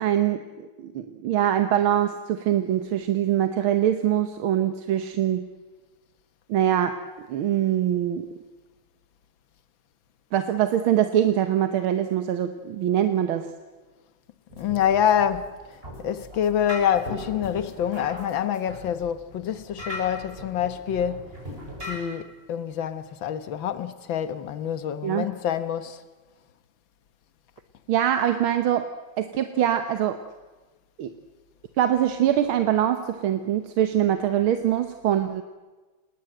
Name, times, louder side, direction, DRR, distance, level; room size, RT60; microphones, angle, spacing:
voice 1, 0.0-5.5 6.5-7.0 7.3-8.2 10.3-13.5 25.0-25.3 27.9-28.9 29.2-30.2 31.0-31.1 31.8-35.4, right 11 dB, 90° right, 1.9 m, -23 dB
sound 1, 14.5-22.0, equal, 25° right, 7.2 m, -39 dB
voice 2, 14.6-15.5 16.0-21.3 21.9-26.0, left 9 dB, 70° left, 1.9 m, -26 dB
28.0 x 19.5 x 7.9 m
omnidirectional pair, 2.2 m